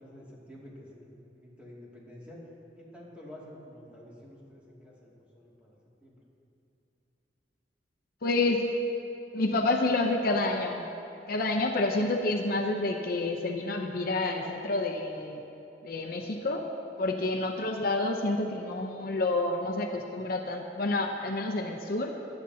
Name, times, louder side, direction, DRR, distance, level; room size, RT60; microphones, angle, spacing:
voice 1, 0.0-2.4 2.8-6.2, left 1 dB, 5° right, -6 dB, 2.4 m, -49 dB
voice 2, 8.2-8.7 9.3-10.9 11.3-15.4 15.8-16.6 17.0-22.1, left 2 dB, 60° left, 3 dB, 0.7 m, -29 dB
17.0 x 11.5 x 2.8 m, 2.9 s
head